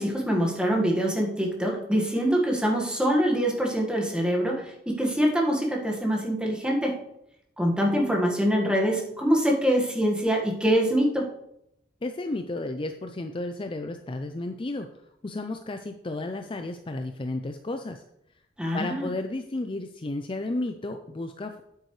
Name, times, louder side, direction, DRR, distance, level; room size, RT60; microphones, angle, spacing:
voice 1, 0.0-7.0 7.6-11.3 18.6-19.1, equal, 5° right, -1 dB, 1.6 m, -24 dB
voice 2, 12.0-14.9 15.2-18.0 18.7-21.6, left 2 dB, 30° left, 6 dB, 0.5 m, -33 dB
9.2 x 8.3 x 3.2 m, 0.78 s
head